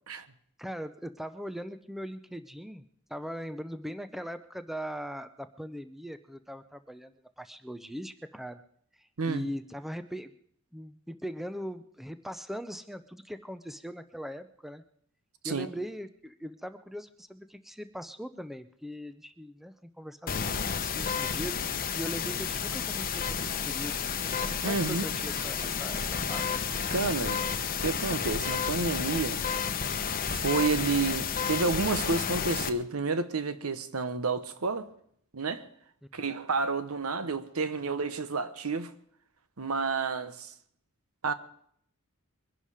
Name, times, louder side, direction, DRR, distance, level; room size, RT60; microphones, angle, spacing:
voice 1, 0.6-2.8 3.1-7.1 7.4-8.6 9.0-10.3 10.7-14.8 15.4-24.0 24.4-26.5, equal, ahead, 0.6 m, -40 dB
voice 2, 9.2-9.5 15.4-15.7 24.6-25.0 26.9-27.5 27.8-29.4 30.3-34.9 35.3-35.6 36.1-38.9 39.6-40.5 41.2-41.3, right 4 dB, 75° right, 1.0 m, -30 dB
sound 1, 20.3-32.7, left 6 dB, 40° left, 0.9 m, -31 dB
sound 2, 21.9-27.9, right 1 dB, 45° right, 4.8 m, -48 dB
22.5 x 11.0 x 4.9 m
head